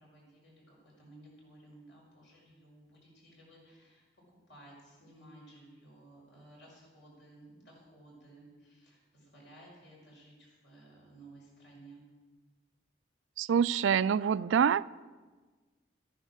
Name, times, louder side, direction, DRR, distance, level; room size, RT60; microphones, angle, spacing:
voice 1, 0.0-12.0, right 1 dB, 75° left, -3 dB, 5.5 m, -56 dB
voice 2, 13.4-14.8, right 7 dB, 85° right, 18 dB, 0.3 m, -26 dB
13.5 x 10.0 x 6.5 m, 1.3 s
head